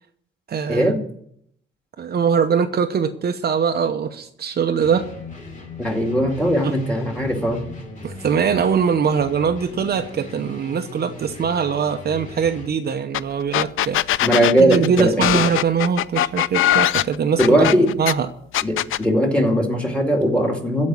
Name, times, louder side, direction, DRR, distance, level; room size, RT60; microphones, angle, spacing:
voice 1, 0.5-1.0 2.0-5.1 6.6-6.8 8.0-14.0 14.6-17.7 18.0-18.3, right 6 dB, 50° right, 6 dB, 0.8 m, -22 dB
sound 1, 4.8-12.7, left 4 dB, 40° left, 3.0 m, -38 dB
voice 2, 5.8-7.7 14.2-15.4 17.4-17.9 18.6-20.9, equal, 5° left, 3 dB, 2.3 m, -19 dB
sound 2, 13.1-13.2 13.5-18.1 18.5-19.0, left 13 dB, 75° left, 0.4 m, -20 dB
14.5 x 5.3 x 9.5 m, 0.68 s
cardioid pair, 140°, 21 cm